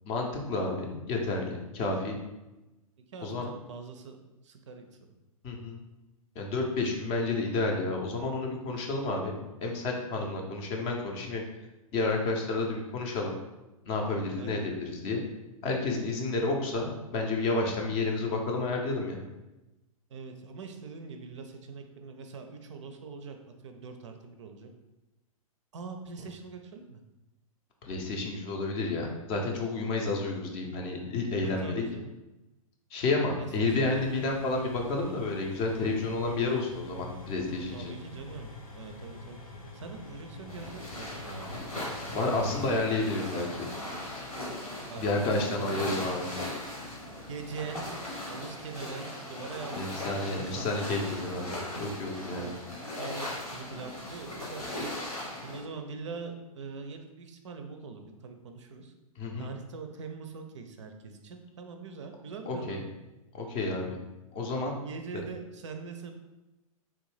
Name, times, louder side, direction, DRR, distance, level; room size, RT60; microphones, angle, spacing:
voice 1, 0.1-2.2 3.2-3.5 5.4-5.8 6.4-9.3 9.6-11.4 11.9-13.3 13.9-15.2 15.6-19.2 27.8-31.8 32.9-37.9 42.1-43.7 45.0-46.3 49.8-52.5 59.2-59.5 62.5-62.8 63.3-63.9 64.3-64.8, left 3 dB, 25° left, 1 dB, 0.5 m, -30 dB
voice 2, 3.1-4.2 4.4-4.9 14.4-14.6 20.1-24.7 25.7-27.0 31.4-32.1 33.3-34.2 37.7-41.6 42.1-42.8 44.9-46.1 47.3-47.9 48.3-50.7 52.3-52.7 53.0-58.9 59.4-62.9 64.8-66.1, right 4 dB, 55° right, 6 dB, 0.4 m, -43 dB
sound 1, 33.6-42.9, left 2 dB, 70° left, 0.7 m, -46 dB
sound 2, 40.5-55.6, left 1 dB, 90° left, 1.3 m, -39 dB
3.4 x 2.6 x 3.1 m, 1.0 s
figure-of-eight pair, 110°, 19 cm